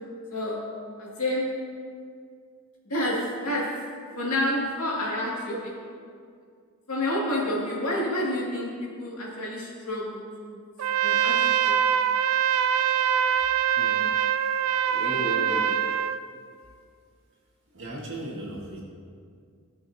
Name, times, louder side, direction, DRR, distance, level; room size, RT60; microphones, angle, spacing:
voice 1, 0.3-0.6 1.0-1.6 2.9-3.8 4.1-5.7 6.9-10.6 11.0-11.8, left 1 dB, 80° left, -5 dB, 2.3 m, -29 dB
Trumpet, 10.8-16.2, right 9 dB, 75° right, 0.4 m, -24 dB
voice 2, 14.8-15.8 17.7-18.8, right 1 dB, 55° right, -4 dB, 2.0 m, -34 dB
17.0 x 5.7 x 2.8 m, 2.2 s
head